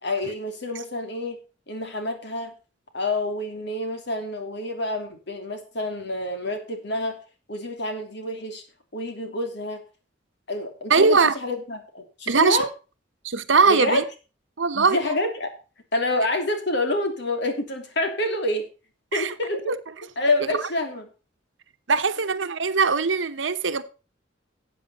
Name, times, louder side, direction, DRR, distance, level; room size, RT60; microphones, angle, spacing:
voice 1, 0.0-1.4 1.7-2.5 2.9-7.2 7.5-8.6 8.9-9.8 10.5-12.7 13.7-14.0 14.7-15.5 15.9-18.7 19.1-19.8 20.2-21.1, left 1 dB, 65° left, 2.9 m, -27 dB
voice 2, 10.9-11.3 12.3-12.6 13.2-14.0 14.6-15.0 19.1-19.3 19.7-19.8 21.9-23.8, right 4 dB, 85° right, 1.0 m, -20 dB
13.0 x 8.5 x 4.1 m
head